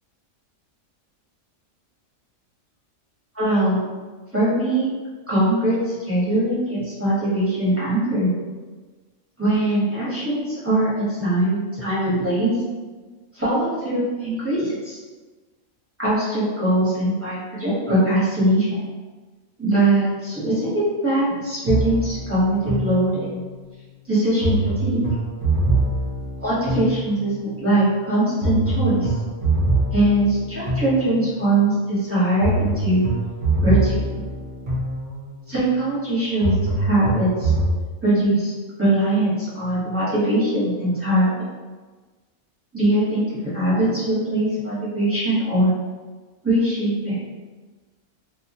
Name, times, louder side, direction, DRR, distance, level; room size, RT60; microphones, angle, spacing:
voice 1, 3.3-3.9 4.3-4.9 5.3-8.3 9.4-12.5 13.3-15.0 16.0-18.8 19.6-23.4 24.1-25.0 26.4-29.1 29.9-33.0 33.6-34.1 35.5-37.5 38.0-38.5 38.8-41.3 42.7-43.3 43.5-45.7 46.4-47.2, right 1 dB, 10° right, -10 dB, 0.8 m, -21 dB
sound 1, 21.7-23.5 24.4-27.5 28.4-31.5 32.4-35.5 36.4-37.8, right 2 dB, 45° right, 0.4 m, -24 dB
2.3 x 2.2 x 2.7 m, 1.3 s
omnidirectional pair, 1.3 m